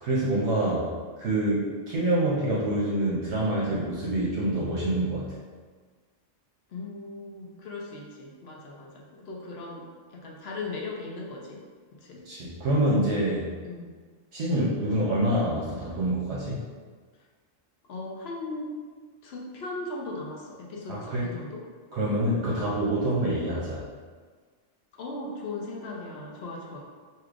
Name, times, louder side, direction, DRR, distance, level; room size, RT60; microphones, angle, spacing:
voice 1, 0.0-0.9 1.2-5.3 12.3-13.5 14.3-16.7 20.9-21.3 21.9-23.8, right 1 dB, 65° right, -6 dB, 0.9 m, -26 dB
voice 2, 0.6-1.1 6.7-11.6 11.9-12.2 13.6-13.9 17.8-18.8 19.2-21.6 22.4-22.6 24.9-26.8, left 2 dB, 60° left, -2 dB, 0.8 m, -38 dB
4.7 x 2.8 x 2.4 m, 1.5 s
omnidirectional pair, 1.3 m